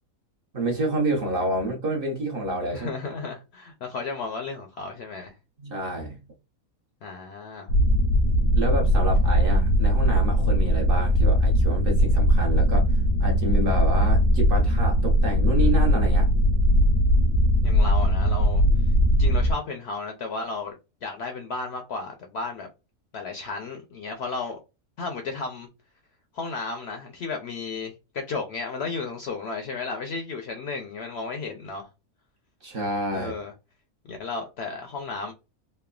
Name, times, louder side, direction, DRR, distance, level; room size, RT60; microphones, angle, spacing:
voice 1, 0.5-2.9 5.6-6.2 8.5-12.9 13.2-16.3 32.6-33.3, right 1 dB, 50° right, 0.8 m, -28 dB
voice 2, 2.7-5.3 7.0-7.7 17.6-18.6 19.2-20.8 21.0-22.7 23.1-24.6 25.0-25.7 26.3-31.9 33.1-33.5 34.0-35.3, left 4 dB, 65° left, 0.6 m, -33 dB
sound 1, 7.7-19.5, equal, 80° left, 1.0 m, -20 dB
3.1 x 2.0 x 2.3 m
omnidirectional pair, 1.5 m